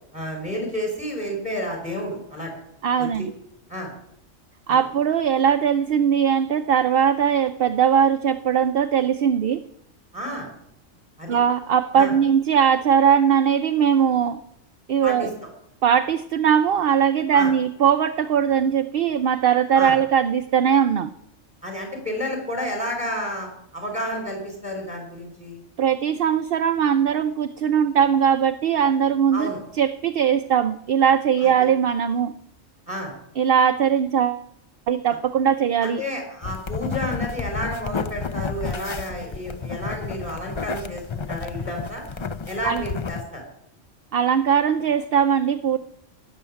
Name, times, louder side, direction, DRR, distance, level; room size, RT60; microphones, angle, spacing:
voice 1, 0.1-2.5 3.0-3.1 3.7-3.9 4.7-4.8 10.1-10.5 11.2-11.4 11.9-12.1 15.0-15.3 17.3-17.5 19.7-19.9 21.6-25.6 29.3-29.6 31.4-31.5 32.9-33.1 35.8-42.0 42.5-43.4, equal, 5° right, 1 dB, 4.7 m, -31 dB
voice 2, 2.8-3.3 4.7-9.6 11.3-14.4 14.9-15.3 15.8-21.1 25.8-32.3 33.4-34.4 34.9-36.0 42.6-42.8 44.1-45.8, right 8 dB, 55° right, 8 dB, 0.8 m, -20 dB
sound 1, 36.4-43.2, left 5 dB, 40° left, 0.4 m, -31 dB
16.5 x 7.1 x 9.8 m, 0.76 s
omnidirectional pair, 1.3 m